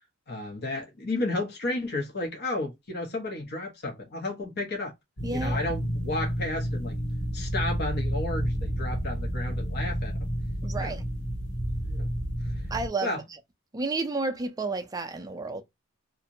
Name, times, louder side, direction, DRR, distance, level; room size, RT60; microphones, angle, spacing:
voice 1, 0.3-4.9 5.3-6.9 7.3-10.3 10.8-10.9 11.8-12.1 13.0-13.2, left 2 dB, 50° left, 0.7 m, -32 dB
sound 1, 5.2-12.9, equal, 75° left, 1.3 m, -30 dB
voice 2, 5.2-5.6 10.6-11.0 12.7-13.2 13.7-15.6, right 3 dB, 20° right, 0.4 m, -31 dB
2.6 x 2.1 x 2.7 m
head